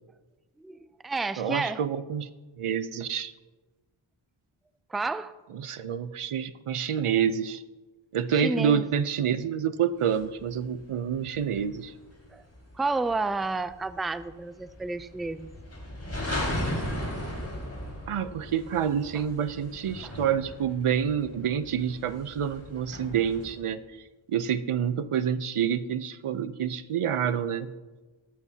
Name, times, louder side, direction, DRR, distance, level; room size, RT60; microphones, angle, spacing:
voice 1, 0.6-1.8 4.9-5.3 8.3-8.8 12.3-12.4 12.8-15.5 20.0-20.1, right 3 dB, ahead, 13 dB, 0.4 m, -30 dB
voice 2, 1.4-2.3 2.6-3.3 5.5-7.6 8.1-11.9 18.1-23.8 24.3-27.7, right 8 dB, 85° right, 13 dB, 0.7 m, -28 dB
sound 1, 10.1-23.5, left 1 dB, 30° left, 4.9 m, -37 dB
18.0 x 14.0 x 2.8 m, 1.3 s
wide cardioid pair, 70°, 49 cm